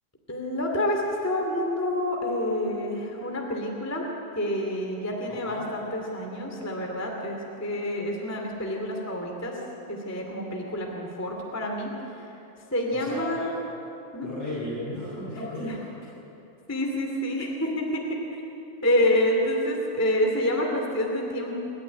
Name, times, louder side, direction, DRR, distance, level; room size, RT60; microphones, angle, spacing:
voice 1, 0.3-4.1 4.4-9.6 9.9-11.9 12.2-12.3 12.7-13.5 14.1-14.3 15.6-15.8 16.7-18.0 18.8-21.6, left 1 dB, 5° left, 0 dB, 2.2 m, -28 dB
voice 2, 5.3-5.7 12.9-13.6 14.2-15.9, left 1 dB, 60° left, -8 dB, 8.4 m, -35 dB
27.0 x 14.0 x 9.8 m, 3.0 s
omnidirectional pair, 3.4 m